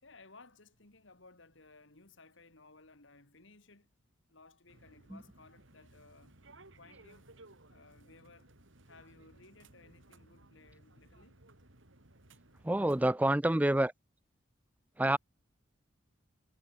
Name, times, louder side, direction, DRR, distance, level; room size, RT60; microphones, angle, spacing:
voice 1, 0.0-3.9 4.3-6.4 6.8-7.3 7.7-8.5 8.9-11.4, left 3 dB, 65° left, 2.5 m, -59 dB
sound 1, 4.7-13.1, right 2 dB, 65° right, 2.9 m, -60 dB
voice 2, 12.6-13.9 15.0-15.2, right 1 dB, 5° right, 0.4 m, -27 dB
head